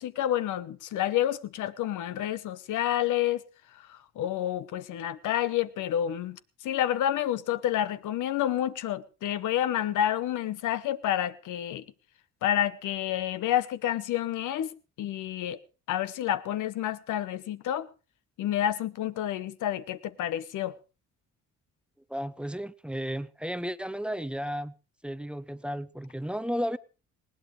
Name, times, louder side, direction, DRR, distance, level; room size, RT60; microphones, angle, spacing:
voice 1, 0.0-3.4 3.9-11.8 12.4-14.7 15.0-15.6 15.9-17.9 18.4-20.8, left 11 dB, 80° left, 1.0 m, -29 dB
voice 2, 22.1-24.7 25.0-26.8, equal, 5° right, 0.7 m, -33 dB
20.0 x 17.5 x 3.2 m
cardioid pair, 90°, 30 cm